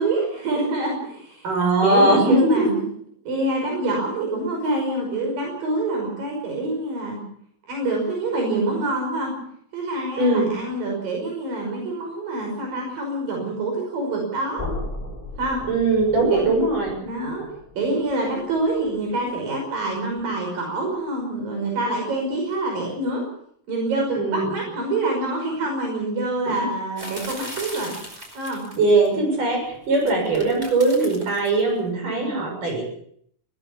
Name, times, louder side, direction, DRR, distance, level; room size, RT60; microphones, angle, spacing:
voice 1, 0.0-1.5 1.8-2.8 3.3-7.2 7.7-9.3 9.7-14.6 15.4-15.6 17.0-17.4 17.8-23.2 23.7-27.9 28.3-28.6 30.0-30.2 32.1-32.3, right 2 dB, 90° right, 1 dB, 7.4 m, -26 dB
voice 2, 1.4-2.7 10.2-10.5 15.7-17.0 24.1-24.5 28.8-32.8, right 2 dB, 70° right, 2 dB, 8.6 m, -20 dB
sound 1, 14.6-20.5, left 2 dB, 10° left, 4.8 m, -37 dB
sound 2, 27.0-29.1 29.9-31.6, equal, 20° right, 5.2 m, -37 dB
21.0 x 19.5 x 7.0 m, 0.66 s
omnidirectional pair, 3.9 m